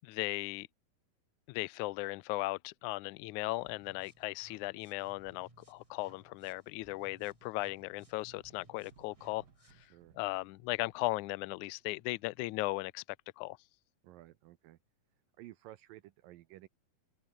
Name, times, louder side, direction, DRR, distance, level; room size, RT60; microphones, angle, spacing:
voice 1, 0.0-0.7 1.5-9.4 10.1-13.0 13.4-13.6, left 22 dB, 85° left, 1.7 m, -37 dB
sound 1, 3.6-9.9, right 1 dB, 10° right, 2.9 m, -64 dB
sound 2, 5.4-6.1 6.4-12.5, right 6 dB, 60° right, 5.0 m, -66 dB
voice 2, 14.0-14.8 15.4-16.7, right 15 dB, 75° right, 2.5 m, -53 dB
omnidirectional pair, 4.2 m